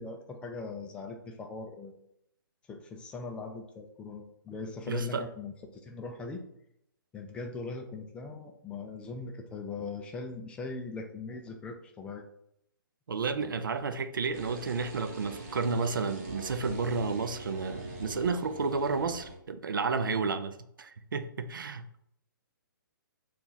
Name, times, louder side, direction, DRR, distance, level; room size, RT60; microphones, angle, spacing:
voice 1, 0.0-2.0 2.7-6.4 7.1-12.2 13.4-13.5, left 3 dB, 10° left, 3 dB, 0.3 m, -40 dB
voice 2, 4.9-5.2 13.1-22.0, right 4 dB, 75° right, 10 dB, 0.4 m, -31 dB
sound 1, 14.3-19.4, right 1 dB, 45° right, 1.0 m, -43 dB
2.9 x 2.4 x 3.9 m, 0.74 s
figure-of-eight pair, 135°, 11 cm